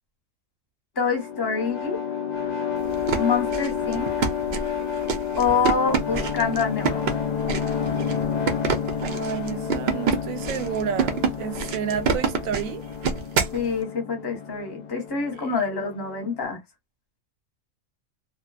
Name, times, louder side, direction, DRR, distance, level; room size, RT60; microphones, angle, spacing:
sound 1, 1.0-16.4, left 7 dB, 70° left, 0.4 m, -30 dB
voice 1, 1.0-2.0 3.2-4.1 5.4-7.1 13.5-16.6, left 5 dB, 20° left, 0.8 m, -26 dB
sound 2, 2.9-13.6, right 5 dB, 60° right, 0.7 m, -27 dB
voice 2, 9.0-12.8 15.3-15.6, right 8 dB, 80° right, 1.0 m, -31 dB
2.7 x 2.3 x 2.3 m
omnidirectional pair, 1.4 m